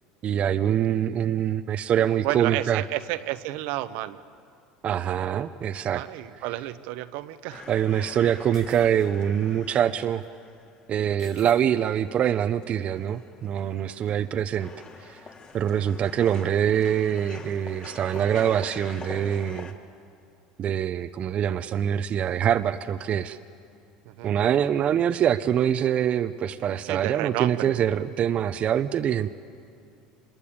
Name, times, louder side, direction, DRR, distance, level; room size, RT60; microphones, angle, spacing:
voice 1, 0.2-2.8 4.8-6.0 7.7-10.2 10.9-14.7 15.0-15.2 15.5-19.7 20.6-23.4 24.2-29.3, right 9 dB, 45° right, 10 dB, 0.8 m, -24 dB
voice 2, 2.2-4.2 5.9-7.7 14.3-14.4 24.0-24.4 26.8-27.8, right 15 dB, 70° right, 12 dB, 1.0 m, -31 dB
sound 1, 7.5-10.9 11.4-11.5 11.8-14.3 14.6-19.7, left 4 dB, 35° left, 2.8 m, -45 dB
sound 2, 8.5-9.1 10.1-10.3 11.2-11.6, left 4 dB, 85° left, 6.1 m, -51 dB
26.5 x 21.5 x 8.7 m, 2.4 s
hypercardioid pair, 90°, 3 cm